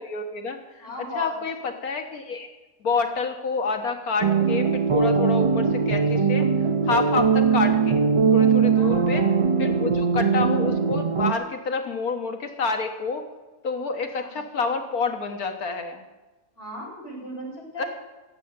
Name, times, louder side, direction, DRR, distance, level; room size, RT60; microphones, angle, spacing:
voice 1, 0.0-0.9 1.2-2.5 2.8-6.5 6.8-8.0 8.3-9.2 9.6-13.3 13.6-16.0 17.8-17.9, left 4 dB, 80° left, 5 dB, 1.9 m, -28 dB
voice 2, 0.8-1.3 8.7-9.1 14.2-14.3 16.6-17.9, left 1 dB, 50° left, -5 dB, 6.3 m, -36 dB
sound 1, 4.2-11.3, right 5 dB, 45° right, 0.4 m, -21 dB
16.0 x 7.8 x 9.5 m, 1.2 s
omnidirectional pair, 1.5 m